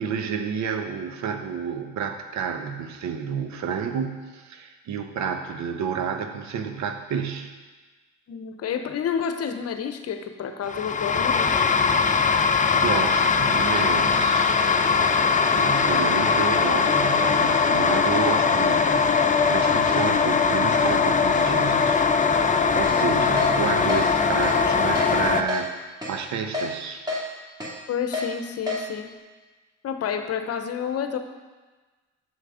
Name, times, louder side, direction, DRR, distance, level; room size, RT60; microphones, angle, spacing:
voice 1, 0.0-7.5 12.2-25.7 26.1-27.1, right 6 dB, 70° right, 6 dB, 1.0 m, -30 dB
voice 2, 8.3-11.6 19.9-20.0 22.9-23.2 27.9-29.1 29.8-31.2, left 7 dB, 55° left, 8 dB, 0.9 m, -30 dB
sound 1, 10.7-25.4, left 5 dB, 25° left, 0.6 m, -21 dB
Keyboard (musical), 22.8-23.0 23.4-23.5 23.9-24.0 24.4-24.6 25.0-25.1 25.5-25.6 26.0-26.1 26.5-26.7 27.1-27.2 27.6-27.7 28.1-28.3 28.7-28.8, left 3 dB, 15° right, 2.5 m, -28 dB
7.1 x 6.7 x 5.0 m, 1.3 s
supercardioid pair, 75°, 29 cm